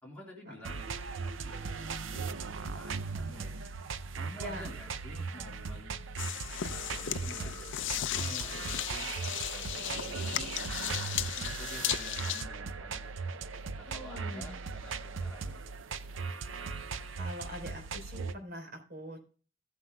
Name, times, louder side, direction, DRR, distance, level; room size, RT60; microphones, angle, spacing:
voice 1, 0.0-2.2 2.6-3.6 4.2-6.0 6.7-9.1 9.5-11.1 11.4-13.1 13.8-15.6, left 1 dB, 10° left, -4 dB, 3.7 m, -50 dB
sound 1, 0.6-18.3, right 4 dB, 70° right, 0.6 m, -38 dB
sound 2, 6.2-12.4, left 12 dB, 65° left, 0.5 m, -36 dB
voice 2, 13.9-14.6 17.2-19.2, equal, 50° right, 2 dB, 4.0 m, -43 dB
15.5 x 9.5 x 2.3 m, 0.39 s
head